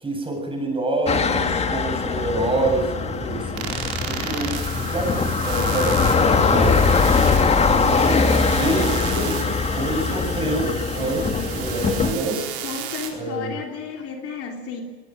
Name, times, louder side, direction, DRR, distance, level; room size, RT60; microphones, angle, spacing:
voice 1, 0.0-3.7 4.0-6.9 7.7-8.2 8.5-9.4 9.7-12.4 13.1-13.5, right 1 dB, 15° right, 3 dB, 7.9 m, -27 dB
sound 1, 1.1-12.1, left 4 dB, 20° left, 1.9 m, -21 dB
sound 2, 3.6-13.1, right 10 dB, 60° right, 4.6 m, -34 dB
voice 2, 11.8-12.3 12.6-14.8, left 5 dB, 45° left, 2 dB, 3.3 m, -33 dB
22.5 x 18.5 x 6.5 m, 1.5 s
supercardioid pair, 110°, 32 cm